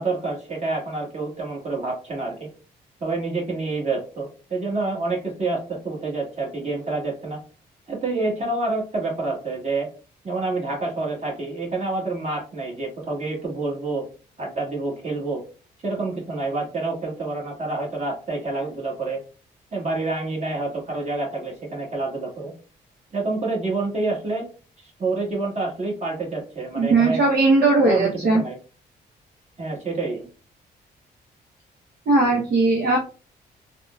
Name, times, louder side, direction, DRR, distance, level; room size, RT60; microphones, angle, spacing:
voice 1, 0.0-2.5 3.0-7.4 7.9-9.9 10.2-14.0 14.4-15.4 15.8-19.2 19.7-22.5 23.1-24.4 25.0-27.3 27.8-28.6 29.6-30.3, right 3 dB, 35° right, -2 dB, 1.5 m, -27 dB
voice 2, 26.8-28.4 32.1-33.0, right 3 dB, 60° right, -2 dB, 0.8 m, -18 dB
3.5 x 2.2 x 2.3 m, 0.37 s
supercardioid pair, 60°, 18 cm